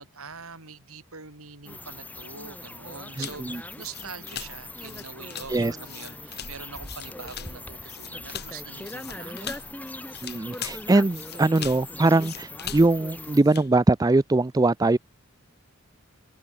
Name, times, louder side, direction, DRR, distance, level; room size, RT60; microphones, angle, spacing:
voice 1, 0.0-9.8, right 5 dB, 85° right, 4.5 m, -44 dB
sound 1, 1.7-13.4, left 2 dB, 5° left, 1.6 m, -40 dB
sound 2, 3.2-13.7, left 9 dB, 50° left, 3.1 m, -41 dB
voice 2, 3.2-3.6 5.5-5.8 10.2-15.0, right 2 dB, 15° right, 0.3 m, -22 dB
head